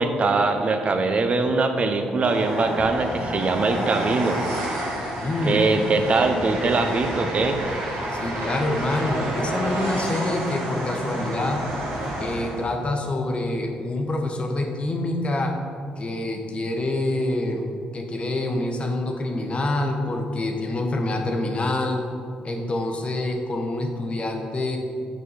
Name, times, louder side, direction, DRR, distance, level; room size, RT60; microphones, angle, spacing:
voice 1, 0.0-4.4 5.4-7.6, right 3 dB, 45° right, 6 dB, 0.7 m, -22 dB
Train, 2.2-12.7, right 1 dB, 75° right, 1.6 m, -29 dB
voice 2, 5.2-5.7 8.1-11.6 12.2-15.5 16.0-22.0 22.4-24.8, left 2 dB, 40° left, 3 dB, 1.0 m, -26 dB
6.9 x 4.7 x 4.1 m, 2.2 s
supercardioid pair, 60°, 3 cm